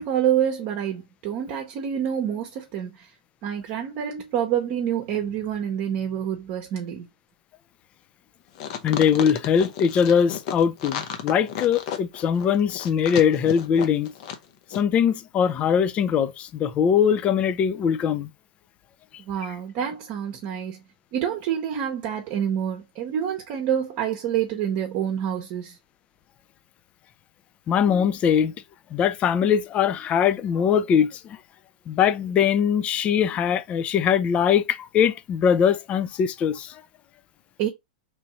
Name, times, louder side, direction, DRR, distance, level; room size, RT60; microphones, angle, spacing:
voice 1, 0.0-3.1 3.4-7.1 19.2-20.8 21.1-25.8 37.6-37.7, right 9 dB, 45° right, 0.8 m, -27 dB
sound 1, 8.6-14.5 14.7-14.8, left 8 dB, 55° left, 0.8 m, -33 dB
voice 2, 8.8-14.1 14.7-18.3 27.7-28.5 28.9-31.4 31.9-36.8, left 8 dB, 30° left, 0.4 m, -21 dB
3.1 x 2.7 x 4.1 m
hypercardioid pair, 120°, 4 cm